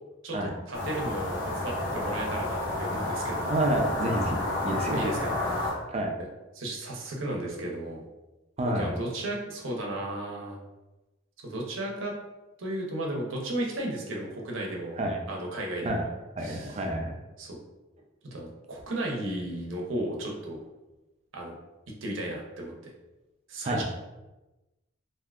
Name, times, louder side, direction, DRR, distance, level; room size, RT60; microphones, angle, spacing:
voice 1, 0.2-3.6 4.9-5.7 6.5-8.0 8.7-10.6 11.4-12.1 12.6-15.0 15.3-16.0 16.4-16.8 17.4-17.6 18.3-20.6 21.3-21.5 22.0-22.7 23.5-23.8, right 1 dB, 65° right, -1 dB, 0.7 m, -34 dB
sound 1, 0.7-5.7, left 2 dB, 65° left, 1.0 m, -30 dB
voice 2, 3.5-4.4 4.6-5.0 5.9-6.1 8.6-8.9 15.0-15.2 15.8-16.0 16.4-17.1 23.6-23.8, right 1 dB, 30° right, 2 dB, 0.3 m, -28 dB
3.4 x 2.6 x 2.3 m, 1.1 s
head